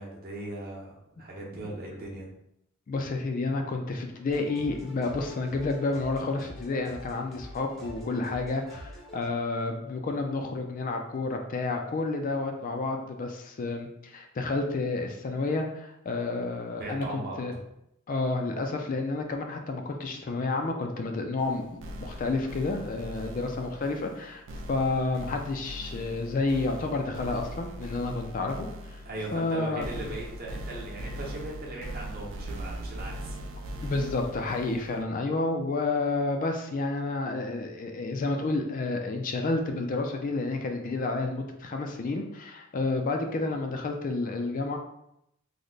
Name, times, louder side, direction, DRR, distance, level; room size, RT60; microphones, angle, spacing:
voice 1, 0.0-2.3 16.7-17.6 29.0-33.4, right 1 dB, 45° right, -2 dB, 0.8 m, -39 dB
voice 2, 2.9-17.5 18.1-29.0 29.3-30.1 33.8-44.8, left 3 dB, 40° left, 4 dB, 0.3 m, -30 dB
sound 1, 4.3-9.3, left 1 dB, ahead, 0.7 m, -46 dB
sound 2, 21.4-35.0, right 1 dB, 60° right, 0.4 m, -40 dB
3.2 x 2.1 x 3.8 m, 0.80 s
head